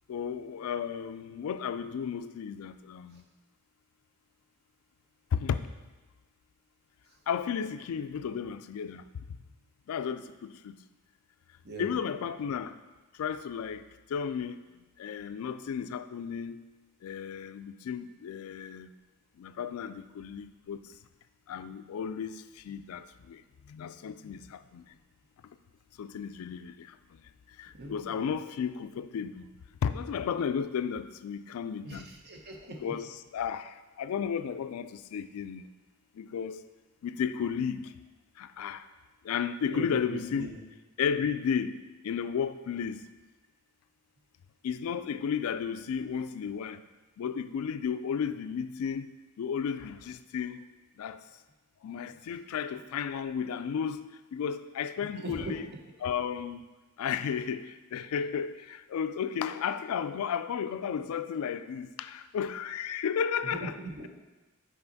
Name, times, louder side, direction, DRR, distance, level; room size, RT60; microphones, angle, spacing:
voice 1, 0.1-3.2 5.3-5.7 7.3-9.2 9.9-10.8 11.8-12.8 13.1-14.6 15.0-16.6 17.0-18.9 19.4-21.0 21.5-24.9 26.0-27.2 27.5-29.5 29.8-32.1 32.8-35.7 36.1-36.6 37.0-38.0 38.4-38.9 39.2-40.5 41.0-43.1 44.6-46.8 47.2-49.1 49.4-50.6 51.0-51.2 51.8-55.7 56.0-56.7 57.0-63.7, left 7 dB, 90° left, 12 dB, 0.3 m, -33 dB
voice 2, 27.7-28.3 31.8-32.8 39.7-40.5 55.2-55.5 63.5-64.1, right 2 dB, 50° right, 1 dB, 0.9 m, -40 dB
5.6 x 5.1 x 4.0 m, 1.2 s
head